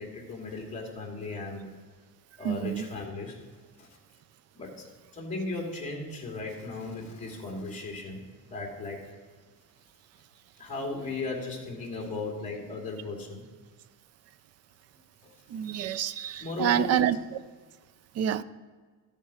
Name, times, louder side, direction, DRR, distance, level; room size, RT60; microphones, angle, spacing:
voice 1, 0.0-1.7 2.4-3.4 3.8-3.9 4.5-8.2 8.5-9.0 10.6-13.4 16.4-17.0, left 3 dB, 20° left, 2.5 m, -36 dB
voice 2, 2.4-2.8 15.5-17.2 18.1-18.4, right 10 dB, 45° right, 0.4 m, -27 dB
14.0 x 7.2 x 4.9 m
cardioid pair, 170°, 35 cm